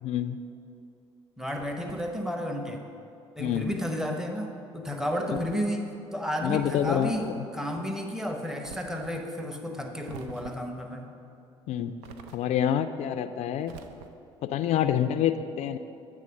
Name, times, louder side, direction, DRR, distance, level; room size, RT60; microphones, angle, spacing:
voice 1, 0.0-0.4 3.4-3.8 5.3-5.4 6.4-7.4 11.7-11.9 12.3-13.8 14.4-15.8, left 9 dB, 55° left, 10 dB, 0.4 m, -27 dB
voice 2, 1.4-2.8 3.4-11.1, equal, 5° right, 3 dB, 0.9 m, -32 dB
sound 1, 1.5-2.3 3.4-3.9 5.1-5.7 6.5-7.4 8.6-9.2 10.0-10.8 12.0-12.7 13.6-14.3, right 6 dB, 70° right, 0.5 m, -48 dB
8.3 x 3.6 x 6.5 m, 2.6 s
hypercardioid pair, 55°, 14 cm